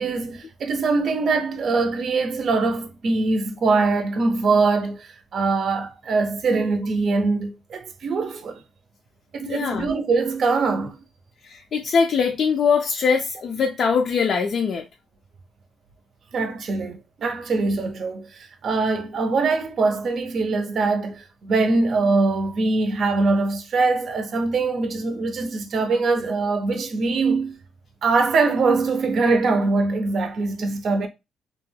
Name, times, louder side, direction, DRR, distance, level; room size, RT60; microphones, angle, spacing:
voice 1, 0.0-8.6 9.3-11.0 16.3-27.6 28.0-31.1, right 3 dB, 55° right, 0.5 m, -22 dB
voice 2, 9.5-9.9 11.4-14.8, left 5 dB, 60° left, 0.4 m, -22 dB
2.3 x 2.2 x 3.2 m
cardioid pair, 90°, 0 cm